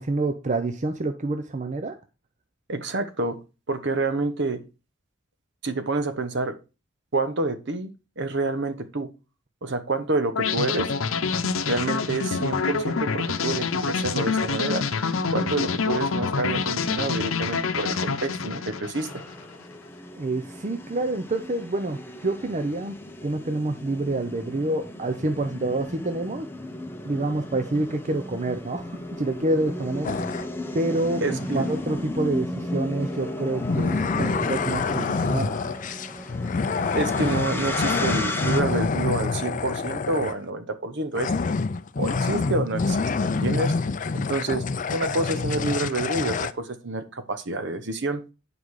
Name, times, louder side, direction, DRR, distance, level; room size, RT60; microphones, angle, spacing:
voice 1, 0.0-2.0 20.2-22.9 23.2-26.5 27.0-30.2 30.7-35.6, right 2 dB, 35° right, 8 dB, 0.6 m, -27 dB
voice 2, 2.7-3.4 3.7-4.6 5.6-6.6 7.1-7.9 8.2-9.1 9.6-10.9 11.6-14.8 15.3-19.2 31.2-31.7 36.9-41.3 42.0-43.8 44.1-48.2, right 2 dB, 60° right, 10 dB, 1.0 m, -28 dB
sound 1, 10.4-19.4, left 5 dB, 90° left, 0.7 m, -26 dB
sound 2, 19.0-38.6, left 1 dB, 10° left, 0.9 m, -34 dB
sound 3, 30.0-30.5 33.6-40.5 41.1-46.5, left 4 dB, 40° left, 0.4 m, -27 dB
9.5 x 5.0 x 4.8 m, 0.31 s
head